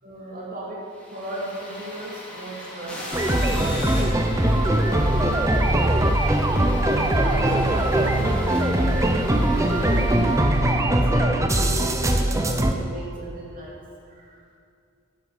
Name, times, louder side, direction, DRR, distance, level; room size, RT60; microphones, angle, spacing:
voice 1, 0.0-6.3 6.9-10.2 10.7-14.6, right 1 dB, 40° right, -4 dB, 2.7 m, -37 dB
sound 1, 0.9-11.1, left 1 dB, 5° left, 3.3 m, -38 dB
sound 2, 3.1-12.7, right 1 dB, 15° right, 0.8 m, -21 dB
12.0 x 10.5 x 7.9 m, 2.3 s
head